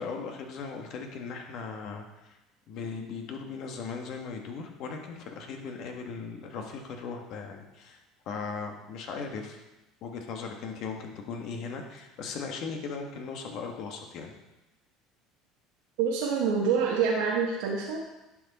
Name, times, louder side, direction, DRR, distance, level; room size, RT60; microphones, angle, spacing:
voice 1, 0.0-2.0 2.7-8.0 8.2-9.6 10.0-14.3, left 5 dB, 60° left, 3 dB, 1.7 m, -38 dB
voice 2, 16.0-18.0, right 6 dB, 85° right, -3 dB, 1.3 m, -26 dB
11.0 x 6.2 x 4.2 m, 1.0 s
supercardioid pair, 110°, 0 cm